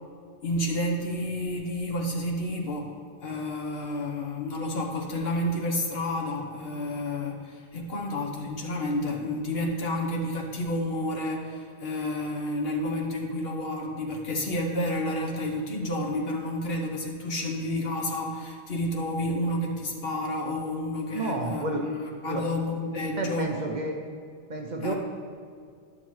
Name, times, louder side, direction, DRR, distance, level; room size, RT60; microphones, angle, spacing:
voice 1, 0.4-2.9 3.2-23.6 24.8-24.9, left 1 dB, 60° left, 1 dB, 1.2 m, -30 dB
voice 2, 21.1-21.8 22.3-22.4 23.2-24.0 24.5-24.9, right 2 dB, 50° right, 2 dB, 0.6 m, -30 dB
10.0 x 6.5 x 3.0 m, 2.2 s
omnidirectional pair, 1.2 m